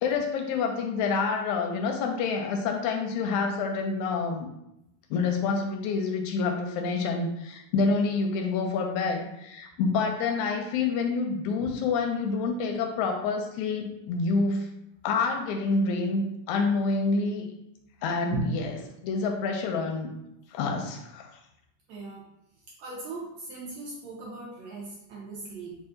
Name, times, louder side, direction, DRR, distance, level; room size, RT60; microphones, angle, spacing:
voice 1, 0.0-4.5 5.1-14.7 15.0-17.5 18.0-18.7 19.0-20.1 20.5-21.3, left 4 dB, 80° left, 3 dB, 1.7 m, -27 dB
voice 2, 21.9-22.3 22.8-25.8, right 4 dB, 80° right, -3 dB, 1.6 m, -37 dB
5.1 x 2.3 x 3.8 m, 0.83 s
omnidirectional pair, 3.7 m